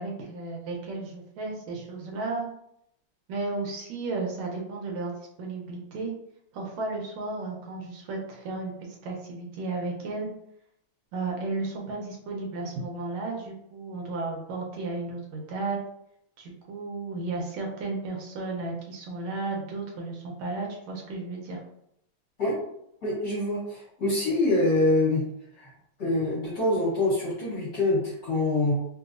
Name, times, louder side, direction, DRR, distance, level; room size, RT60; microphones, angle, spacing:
voice 1, 0.0-2.5 3.3-5.1 5.4-6.1 6.5-8.7 9.0-10.3 11.1-15.8 16.4-21.6, right 3 dB, 85° right, -1 dB, 1.6 m, -33 dB
voice 2, 23.0-25.2 25.5-25.7 26.0-28.8, left 2 dB, 55° left, -8 dB, 1.4 m, -25 dB
3.8 x 2.5 x 2.5 m, 0.77 s
omnidirectional pair, 2.3 m